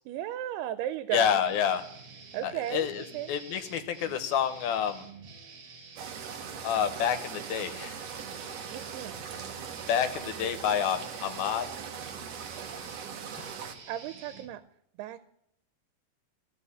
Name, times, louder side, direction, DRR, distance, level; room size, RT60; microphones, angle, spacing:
voice 1, 0.1-1.4 2.3-2.9 3.1-3.4 8.7-9.3 13.9-14.6 15.0-15.2, right 12 dB, 90° right, 12 dB, 2.7 m, -35 dB
voice 2, 1.1-1.8 2.4-5.1 6.6-8.0 9.9-11.7 13.3-13.5, left 8 dB, 75° left, 9 dB, 2.6 m, -29 dB
sound 1, 1.4-14.5, right 4 dB, 55° right, 2.3 m, -49 dB
sound 2, 6.0-13.7, right 7 dB, 70° right, 1.5 m, -40 dB
15.0 x 5.9 x 9.7 m, 0.73 s
omnidirectional pair, 4.5 m